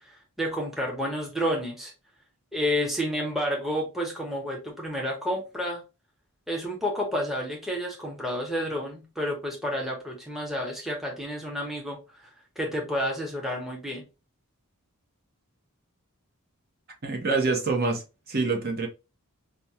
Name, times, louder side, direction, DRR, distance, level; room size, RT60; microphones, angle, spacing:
voice 1, 0.0-1.9 2.5-5.8 6.5-14.0, equal, ahead, 0.8 m, -30 dB
voice 2, 17.0-18.9, right 3 dB, 45° right, 0.9 m, -26 dB
5.1 x 2.2 x 2.8 m
head